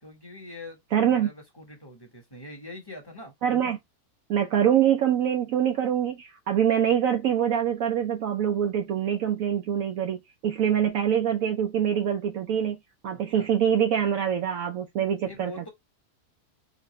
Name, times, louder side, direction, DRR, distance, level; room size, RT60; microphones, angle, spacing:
voice 1, 0.0-3.3 10.7-10.8 13.1-13.5 15.2-15.7, left 1 dB, 15° left, 1.1 m, -44 dB
voice 2, 0.9-1.3 3.4-3.8 4.3-12.8 13.0-15.7, right 9 dB, 70° right, 1.0 m, -24 dB
3.9 x 2.6 x 3.0 m
omnidirectional pair, 1.6 m